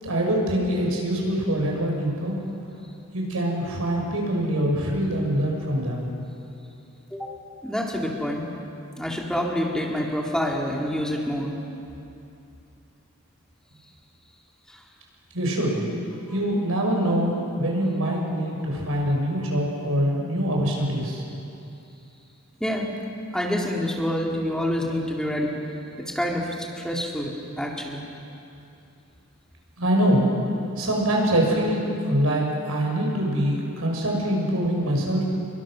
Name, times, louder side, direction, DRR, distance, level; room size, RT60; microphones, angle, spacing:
voice 1, 0.0-2.4 3.1-6.1 15.3-15.9 16.3-21.2 29.8-30.3 30.8-35.2, right 1 dB, 75° right, 0 dB, 5.9 m, -24 dB
voice 2, 7.6-8.5 9.0-11.5 14.7-14.8 22.6-22.9 23.3-25.6 26.0-28.0, equal, 5° left, -2 dB, 2.3 m, -27 dB
27.5 x 23.0 x 6.3 m, 2.7 s
head